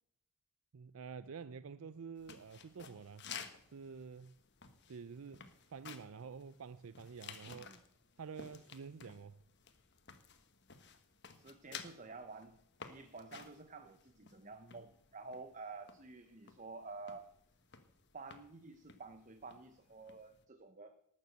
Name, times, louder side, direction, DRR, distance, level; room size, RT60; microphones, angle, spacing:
voice 1, 0.7-3.3 3.7-4.4 4.9-7.7 8.2-9.4, right 5 dB, 75° right, 0.5 m, -49 dB
sound 1, 2.2-20.4, left 6 dB, 50° left, 1.3 m, -55 dB
voice 2, 7.5-7.8 11.3-17.3 18.1-20.9, right 3 dB, 35° right, 0.8 m, -51 dB
18.5 x 7.4 x 7.9 m
head